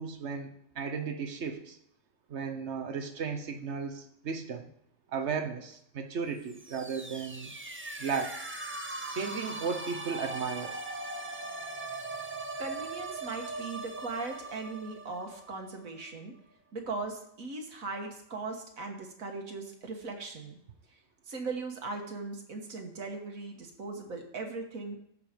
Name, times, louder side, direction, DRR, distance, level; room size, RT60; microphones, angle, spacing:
voice 1, 0.0-1.8 2.3-4.7 5.1-7.5 8.0-8.4 9.1-10.8, right 5 dB, 60° right, 7 dB, 1.3 m, -35 dB
sound 1, 6.4-16.2, right 2 dB, 15° right, 0.5 m, -40 dB
voice 2, 12.6-16.3 16.7-20.6 21.3-25.0, right 3 dB, 90° right, 3 dB, 1.8 m, -39 dB
13.5 x 5.0 x 5.1 m, 0.72 s
omnidirectional pair, 1.4 m